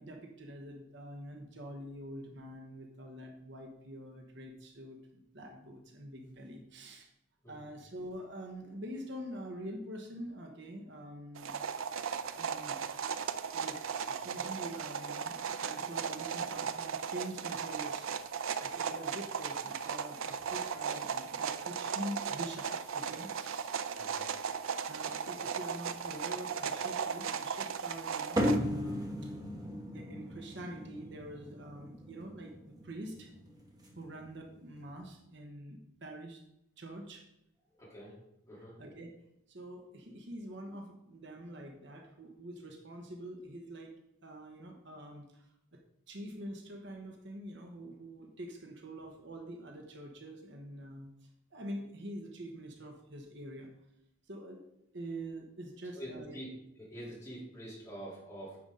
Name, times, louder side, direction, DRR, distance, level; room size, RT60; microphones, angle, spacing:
voice 1, 0.0-7.1 7.5-11.5 12.3-12.8 13.4-13.8 14.1-18.3 18.6-23.9 24.9-29.3 29.9-33.3 34.0-36.4 36.8-37.3 38.8-39.1 39.5-44.0 44.2-45.8 46.1-51.1 51.5-53.7 54.3-54.6 54.9-56.4, right 1 dB, 55° right, 3 dB, 1.1 m, -45 dB
sound 1, 11.4-28.6, right 6 dB, 75° right, 0.5 m, -37 dB
sound 2, 28.4-35.1, equal, 20° right, 1.3 m, -37 dB
voice 2, 37.8-38.1 38.5-38.7 56.0-56.5 56.8-58.6, right 1 dB, 15° left, -6 dB, 3.4 m, -45 dB
9.6 x 6.9 x 3.9 m, 0.83 s
head